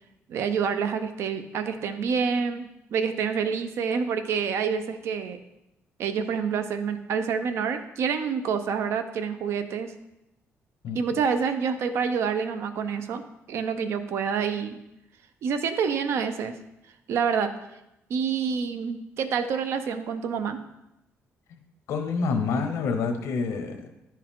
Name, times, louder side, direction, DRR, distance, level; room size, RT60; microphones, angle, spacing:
voice 1, 0.3-5.4 6.0-9.9 10.9-14.8 15.4-16.6 17.1-17.5 18.1-20.7, right 6 dB, 60° right, 9 dB, 0.6 m, -27 dB
voice 2, 21.9-23.9, left 4 dB, 80° left, 6 dB, 0.9 m, -27 dB
10.0 x 4.6 x 3.6 m, 0.90 s
cardioid pair, 170°, 5 cm